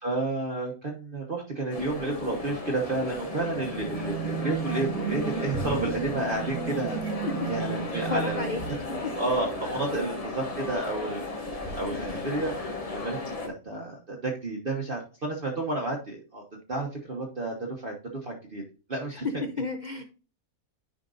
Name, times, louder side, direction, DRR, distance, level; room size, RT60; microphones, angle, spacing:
voice 1, 0.0-7.0 7.5-8.5 9.2-12.5 12.9-16.4 16.7-17.9 18.2-18.6 18.9-19.3, right 2 dB, 40° right, -1 dB, 1.3 m, -31 dB
sound 1, 1.7-13.5, left 2 dB, 25° left, 1.1 m, -35 dB
sound 2, 3.0-9.6, right 10 dB, 90° right, 1.1 m, -35 dB
voice 2, 7.7-8.6 9.9-10.0 11.9-12.1 19.6-20.0, left 3 dB, 50° left, 5 dB, 0.6 m, -33 dB
10.0 x 5.2 x 2.6 m, 0.34 s
omnidirectional pair, 1.5 m